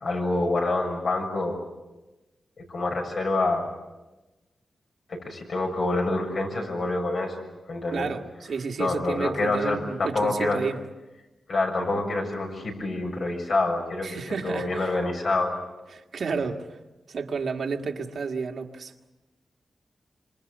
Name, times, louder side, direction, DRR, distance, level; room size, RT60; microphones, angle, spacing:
voice 1, 0.0-1.6 2.7-3.7 5.1-7.4 7.7-8.1 8.8-10.6 11.5-14.2 14.4-15.6 16.3-16.5, left 2 dB, 65° left, 2 dB, 6.9 m, -27 dB
voice 2, 7.9-10.8 14.0-15.0 15.9-16.8 17.1-18.9, right 5 dB, 75° right, 3 dB, 1.8 m, -31 dB
26.5 x 26.0 x 8.0 m, 1.1 s
wide cardioid pair, 95°, 0 cm